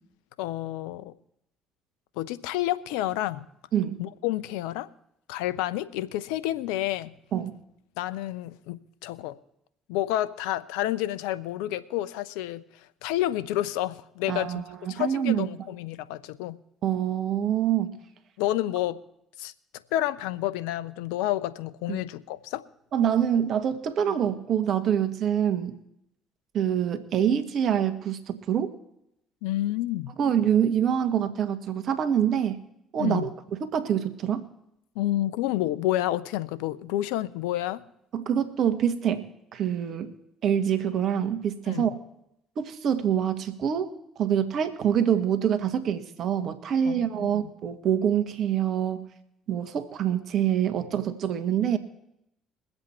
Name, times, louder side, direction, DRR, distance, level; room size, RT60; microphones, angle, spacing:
voice 1, 0.4-1.1 2.2-3.5 4.0-4.9 5.3-7.1 8.0-9.4 9.9-12.6 13.0-14.6 14.9-16.6 18.4-19.0 19.4-19.5 19.9-22.6 29.4-30.1 33.0-33.3 35.0-37.9 41.7-41.9 46.9-47.4, left 14 dB, 75° left, 0.6 m, -29 dB
voice 2, 14.3-15.5 16.8-18.0 21.9-22.0 22.9-25.8 26.5-28.7 30.2-32.6 32.9-33.3 33.6-34.5 38.1-40.1 40.4-42.0 42.6-49.1 49.5-51.8, right 9 dB, 60° right, 1.5 m, -25 dB
22.0 x 8.0 x 4.4 m
hypercardioid pair, 55°, 0 cm